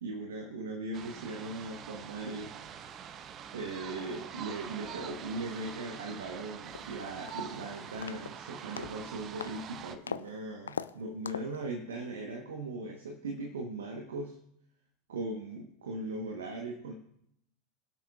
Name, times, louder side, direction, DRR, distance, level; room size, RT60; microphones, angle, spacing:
voice 1, 0.0-2.5 3.5-14.4 15.1-16.9, right 2 dB, 70° right, 3 dB, 1.1 m, -39 dB
sound 1, 0.9-10.0, right 8 dB, 35° right, 0.7 m, -45 dB
sound 2, 6.7-6.9 7.3-7.6 8.0-8.4 8.8-9.0 9.4-9.6 10.1-10.3 10.7-10.9 11.3-11.6, left 6 dB, 80° left, 0.3 m, -39 dB
23.5 x 8.3 x 2.4 m, 0.74 s
figure-of-eight pair, 85°, 0 cm